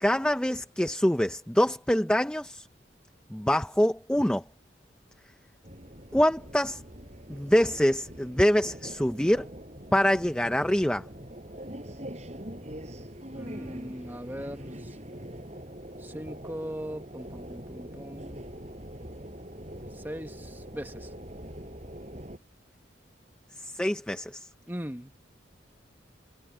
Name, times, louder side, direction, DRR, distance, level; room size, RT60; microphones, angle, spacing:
voice 1, 0.0-2.7 3.3-4.4 6.1-6.8 7.3-9.5 9.9-11.1 23.6-24.5, equal, 5° left, 0.5 m, -25 dB
sound 1, 5.6-22.4, equal, 35° right, 7.9 m, -43 dB
voice 2, 13.3-15.0 16.0-18.4 19.9-21.1 24.7-25.3, equal, 10° right, 1.3 m, -39 dB
head